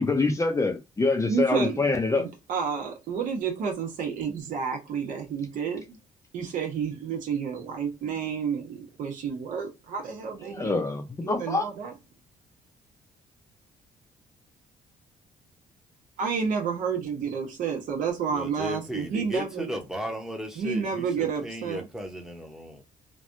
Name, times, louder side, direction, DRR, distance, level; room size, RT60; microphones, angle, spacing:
voice 1, 0.0-2.3 10.4-11.7, left 3 dB, 20° left, 0.6 m, -25 dB
voice 2, 1.3-1.8 2.2-6.0 6.3-10.8 11.2-11.9 16.2-19.8 20.6-21.9, right 6 dB, 65° right, 1.1 m, -30 dB
voice 3, 18.3-22.8, equal, 5° right, 0.9 m, -35 dB
3.3 x 2.3 x 2.6 m
cardioid pair, 100°, 14 cm